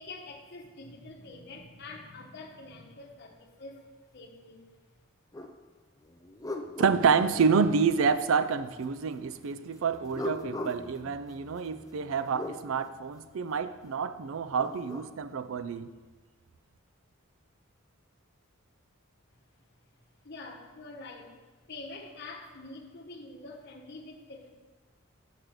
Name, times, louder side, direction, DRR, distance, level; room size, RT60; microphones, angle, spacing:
voice 1, 0.0-4.6 20.2-21.4 21.7-24.5, left 2 dB, 50° left, 1.0 m, -46 dB
sound 1, 5.3-5.5 6.0-8.0 9.9-12.6 14.3-15.1, left 2 dB, 15° left, 0.4 m, -40 dB
voice 2, 6.8-15.9, right 5 dB, 65° right, 0.4 m, -28 dB
6.6 x 5.1 x 6.0 m
head